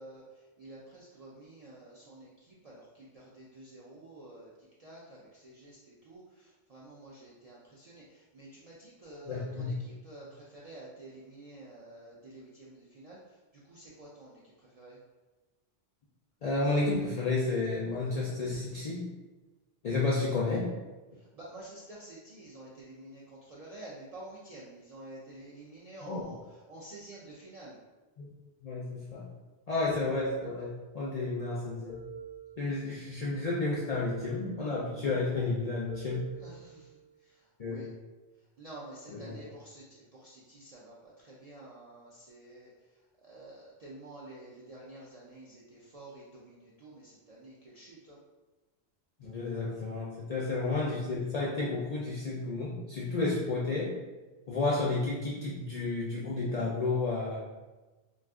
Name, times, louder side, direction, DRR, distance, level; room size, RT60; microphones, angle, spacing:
voice 1, 0.0-4.5 4.8-13.4 13.6-15.0 21.1-27.8 36.4-37.9 38.6-48.2, right 1 dB, 60° right, -6 dB, 0.4 m, -50 dB
voice 2, 9.3-9.7 16.4-19.1 19.8-20.7 26.0-26.2 28.2-28.3 28.6-29.3 29.7-32.0 32.6-36.2 37.6-37.9 39.1-39.4 49.2-53.9 54.5-57.4, left 3 dB, 60° left, -5 dB, 0.4 m, -31 dB
sound 1, 29.9-31.1 31.9-33.1 33.9-35.0 35.9-37.1, right 3 dB, 15° right, 0.6 m, -47 dB
2.5 x 2.3 x 3.5 m, 1.2 s
omnidirectional pair, 1.1 m